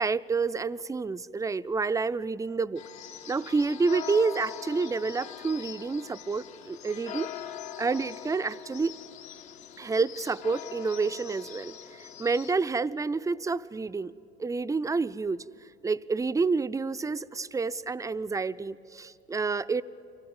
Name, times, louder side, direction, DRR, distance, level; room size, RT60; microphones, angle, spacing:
voice 1, 0.0-2.8 3.3-7.3 7.8-8.9 9.8-14.1 14.4-15.4 15.8-19.8, right 4 dB, 10° right, 13 dB, 0.4 m, -29 dB
sound 1, 2.8-12.5, left 10 dB, 75° left, 1.3 m, -42 dB
25.0 x 17.0 x 8.8 m, 2.8 s
hypercardioid pair, 75°, 31 cm